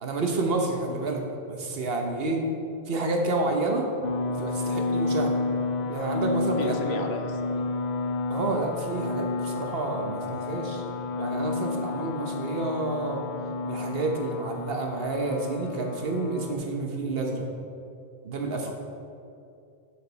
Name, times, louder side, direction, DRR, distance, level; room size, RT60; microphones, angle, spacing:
voice 1, 0.0-1.2 1.5-2.4 2.9-3.9 4.3-5.4 5.9-7.0 8.3-10.8 11.2-13.2 13.6-17.5 18.2-18.7, right 2 dB, 70° right, 2 dB, 1.2 m, -29 dB
sound 1, 4.0-16.5, left 3 dB, 50° left, 0.7 m, -31 dB
voice 2, 6.6-7.6 18.6-18.7, left 4 dB, 85° left, 4 dB, 1.1 m, -35 dB
11.5 x 5.2 x 4.0 m, 2.5 s
omnidirectional pair, 1.0 m